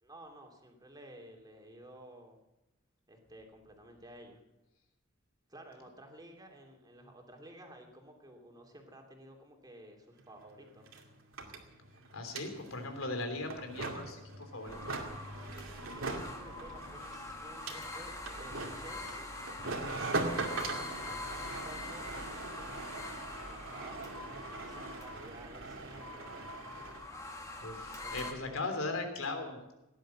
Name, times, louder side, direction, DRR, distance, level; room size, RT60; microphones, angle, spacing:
voice 1, 0.0-2.4 3.1-4.4 5.5-10.9 15.9-19.3 19.8-23.1 23.4-26.4 28.0-29.2, right 1 dB, 20° right, 2 dB, 2.9 m, -53 dB
sound 1, 10.2-10.3 10.5-27.1, right 3 dB, 80° right, 2.4 m, -41 dB
voice 2, 12.1-14.9 27.6-29.7, left 2 dB, 85° left, 5 dB, 3.4 m, -38 dB
sound 2, 14.7-28.3, left 2 dB, 15° left, 2.0 m, -44 dB
17.5 x 10.5 x 7.5 m, 0.96 s
head